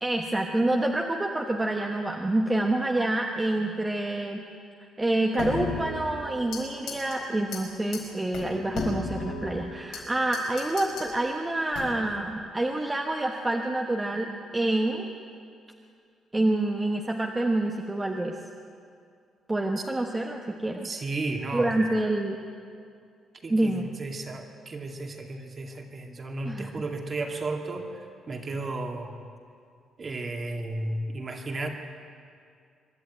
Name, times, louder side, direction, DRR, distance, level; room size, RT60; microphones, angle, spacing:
voice 1, 0.0-4.4 5.0-15.1 16.3-18.3 19.5-20.9 21.5-22.4 23.5-23.9 26.4-26.7, right 2 dB, 15° right, 1 dB, 1.2 m, -27 dB
sound 1, 5.4-6.6 6.9-7.2 7.5-7.6 7.9-8.0 8.3-10.0 10.3-11.1 11.7-12.2, left 4 dB, 80° left, 5.1 m, -34 dB
voice 2, 20.8-21.7 23.4-29.1 30.0-31.7, right 2 dB, 35° right, 3 dB, 2.3 m, -34 dB
24.5 x 11.5 x 9.2 m, 2.3 s
cardioid pair, 130°, 0 cm